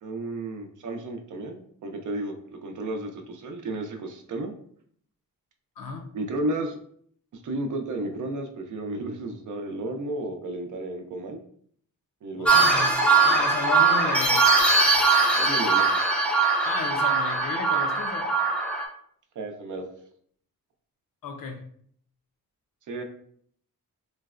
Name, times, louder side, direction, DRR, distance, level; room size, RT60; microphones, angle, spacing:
voice 1, 0.0-4.5 6.1-6.8 7.4-11.4 12.2-12.5 15.3-15.9 19.4-19.8 22.9-23.0, right 2 dB, 60° right, 4 dB, 0.5 m, -33 dB
voice 2, 5.8-6.1 12.4-12.9 13.2-14.4 16.6-18.3 21.2-21.6, left 4 dB, 70° left, 4 dB, 0.6 m, -34 dB
sound 1, 12.4-18.8, right 3 dB, 5° left, 0.4 m, -21 dB
3.9 x 2.0 x 2.3 m, 0.62 s
wide cardioid pair, 160°, 35 cm